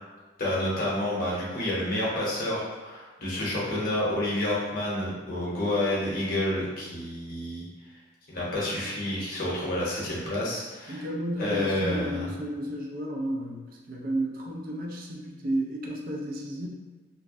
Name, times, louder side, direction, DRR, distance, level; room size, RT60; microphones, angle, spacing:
voice 1, 0.4-7.6 8.3-11.0 11.4-12.3, left 1 dB, 50° left, -6 dB, 0.8 m, -29 dB
voice 2, 10.9-16.7, right 1 dB, 50° right, -1 dB, 0.4 m, -32 dB
2.5 x 2.0 x 2.4 m, 1.3 s
head